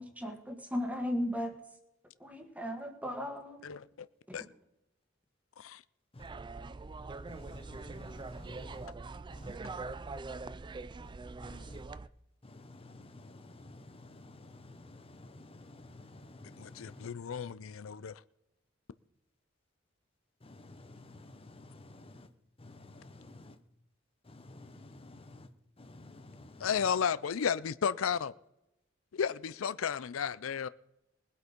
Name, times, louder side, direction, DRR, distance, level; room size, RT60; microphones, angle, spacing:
voice 1, 0.0-1.5 2.2-3.7 4.3-4.5, equal, 10° right, 1.8 m, -36 dB
voice 2, 3.6-4.1 4.3-4.5 5.6-5.8 16.6-18.2 26.6-28.3 29.1-30.7, left 7 dB, 90° left, 0.5 m, -33 dB
sound 1, 6.2-12.1, right 3 dB, 25° right, 0.4 m, -43 dB
voice 3, 7.3-8.9 9.3-9.6 11.4-11.8 12.4-17.1 20.4-22.3 22.6-23.6 24.2-25.5 25.8-26.9, left 2 dB, 30° left, 0.9 m, -52 dB
20.0 x 8.1 x 5.2 m
head